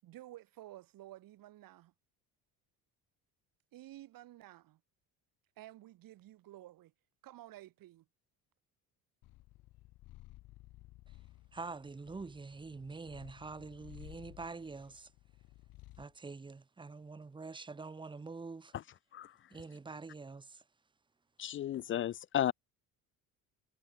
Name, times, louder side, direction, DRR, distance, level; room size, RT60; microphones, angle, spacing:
voice 1, 0.0-1.9 3.7-4.8 5.6-6.9 7.2-8.1, right 15 dB, 65° right, 7.7 m, -52 dB
Purr, 9.2-16.2, left 17 dB, 70° left, 6.1 m, -56 dB
voice 2, 11.5-15.1 16.0-18.7 19.5-20.6, right 4 dB, 15° right, 1.1 m, -46 dB
voice 3, 21.4-22.5, left 11 dB, 35° left, 0.4 m, -33 dB
cardioid pair, 145°, 37 cm